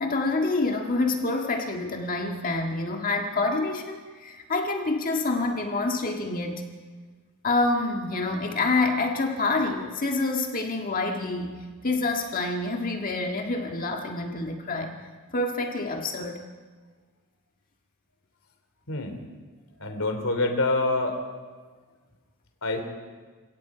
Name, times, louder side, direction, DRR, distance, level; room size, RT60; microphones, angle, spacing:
voice 1, 0.0-6.6 7.4-15.0 15.3-16.4, left 3 dB, 40° left, 2 dB, 1.8 m, -27 dB
voice 2, 18.9-19.2 19.8-21.2 22.6-22.8, left 2 dB, 65° left, 5 dB, 3.4 m, -26 dB
29.0 x 17.5 x 5.1 m, 1.4 s
head